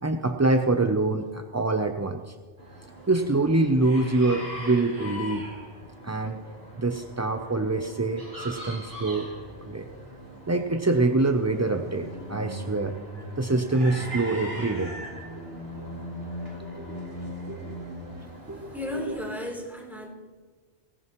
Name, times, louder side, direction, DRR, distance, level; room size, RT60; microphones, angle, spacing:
voice 1, 0.0-2.3 3.1-5.5 6.0-6.4 6.8-9.3 9.7-9.9 10.5-12.9 13.4-14.9 15.4-15.5 16.6-17.0 17.5-17.8 18.5-18.7 19.1-19.2, right 2 dB, 25° right, 6 dB, 0.3 m, -25 dB
sound 1, 2.6-19.2, equal, 80° right, 4.2 m, -40 dB
voice 2, 18.7-20.1, left 1 dB, ahead, -1 dB, 3.2 m, -34 dB
17.5 x 17.0 x 3.0 m, 1.4 s
omnidirectional pair, 1.2 m